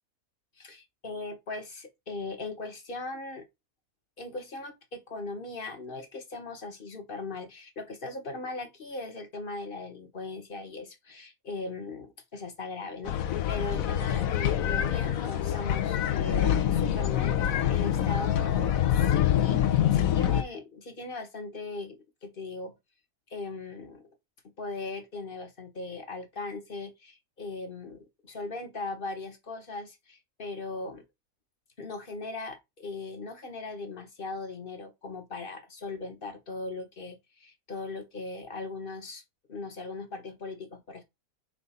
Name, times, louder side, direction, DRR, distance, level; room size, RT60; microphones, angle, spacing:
voice 1, 0.6-3.4 4.2-22.7 23.3-24.1 24.6-31.0 31.8-39.2 39.5-41.0, left 3 dB, 40° left, 1.3 m, -39 dB
sound 1, 13.0-20.4, left 10 dB, 70° left, 1.1 m, -26 dB
4.9 x 3.8 x 5.5 m
omnidirectional pair, 1.6 m